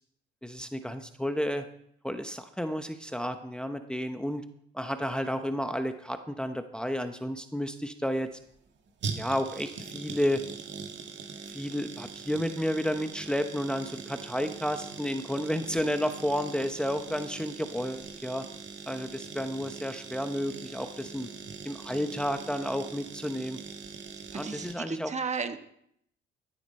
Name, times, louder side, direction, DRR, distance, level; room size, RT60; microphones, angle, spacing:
voice 1, 0.4-1.7 2.0-4.4 4.7-8.3 9.2-10.4 11.5-18.5 18.9-21.3 21.6-23.6 24.3-25.1, equal, 5° left, 7 dB, 0.9 m, -31 dB
sound 1, 8.2-24.7, right 5 dB, 65° right, 1.9 m, -42 dB
voice 2, 24.3-25.6, right 5 dB, 35° right, 8 dB, 1.2 m, -34 dB
15.0 x 9.8 x 4.3 m, 0.72 s
cardioid pair, 90°, 20 cm